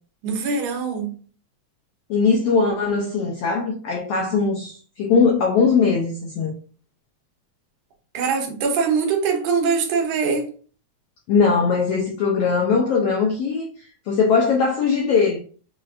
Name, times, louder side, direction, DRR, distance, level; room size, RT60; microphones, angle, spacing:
voice 1, 0.2-1.2 8.1-10.5, right 5 dB, 80° right, 2.3 m, -22 dB
voice 2, 2.1-6.5 11.3-13.6 14.1-15.4, left 5 dB, 80° left, 1.4 m, -20 dB
6.0 x 2.5 x 2.4 m
omnidirectional pair, 3.6 m